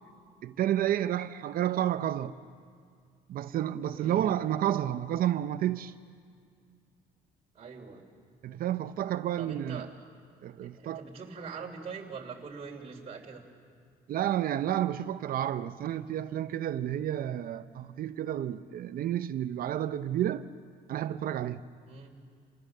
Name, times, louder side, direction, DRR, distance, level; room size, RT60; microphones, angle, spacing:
voice 1, 0.4-2.3 3.3-5.9 8.4-9.9 10.4-11.0 14.1-20.5 20.9-21.6, right 11 dB, 60° right, 0.7 m, -30 dB
voice 2, 3.9-4.3 7.5-8.0 9.4-9.9 10.6-13.4 21.9-22.2, right 5 dB, 35° right, 3.2 m, -43 dB
28.5 x 18.5 x 6.7 m
cardioid pair, 110°, 17 cm